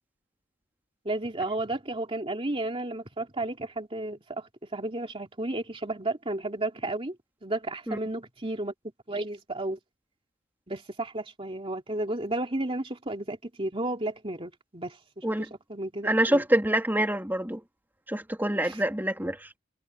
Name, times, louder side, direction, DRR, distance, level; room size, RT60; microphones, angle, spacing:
voice 1, 1.0-7.2 7.4-8.7 9.1-9.8 10.7-15.2 15.7-16.4 18.6-18.8, right 2 dB, 25° right, 2.8 m, -33 dB
voice 2, 16.0-17.6 18.1-19.5, right 1 dB, 10° right, 3.1 m, -26 dB
head